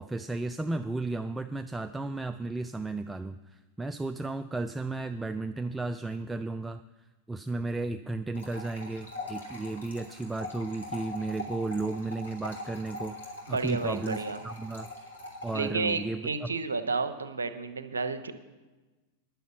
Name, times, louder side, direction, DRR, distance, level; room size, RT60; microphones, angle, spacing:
voice 1, 0.0-6.8 7.3-14.9 15.4-16.5, right 2 dB, 10° right, 9 dB, 0.3 m, -34 dB
sound 1, 8.3-15.6, left 2 dB, 70° left, 3.1 m, -42 dB
voice 2, 13.5-14.4 15.5-18.3, right 4 dB, 75° right, 9 dB, 0.9 m, -31 dB
10.5 x 7.0 x 8.1 m, 1.2 s
figure-of-eight pair, 90°, 0 cm